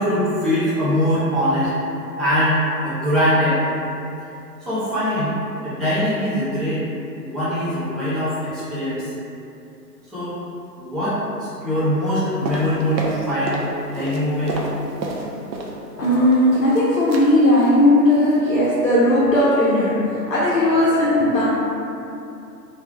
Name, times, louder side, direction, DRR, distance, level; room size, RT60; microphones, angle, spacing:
voice 1, 0.0-1.7 2.2-3.6 4.6-5.3 5.6-6.8 7.2-9.1 10.1-10.4 10.8-13.6 13.8-14.6, equal, ahead, -13 dB, 0.3 m, -22 dB
sound 1, 12.4-13.7 13.9-15.7 16.0-16.8 17.1-17.3 17.6-17.8 18.1-18.4 18.6-18.7, right 2 dB, 85° right, 0.6 m, -29 dB
voice 2, 16.0-19.9 20.3-21.4, left 1 dB, 55° left, -9 dB, 0.5 m, -17 dB
2.1 x 2.1 x 3.1 m, 2.7 s
hypercardioid pair, 180°, 50 cm